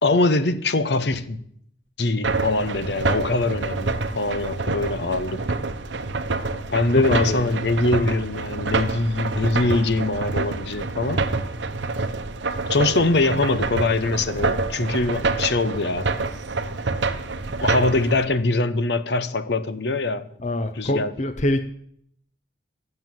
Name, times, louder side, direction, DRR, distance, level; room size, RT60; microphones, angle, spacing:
voice 1, 0.0-1.4 2.0-5.4 6.7-11.3 12.7-16.1 17.6-20.3 20.7-21.1, left 2 dB, 65° left, 0.9 m, -23 dB
sound 1, 2.2-18.3, right 3 dB, 80° right, 1.0 m, -27 dB
voice 2, 6.9-7.4 20.4-21.6, left 1 dB, 40° left, 0.6 m, -24 dB
12.5 x 7.6 x 7.6 m
head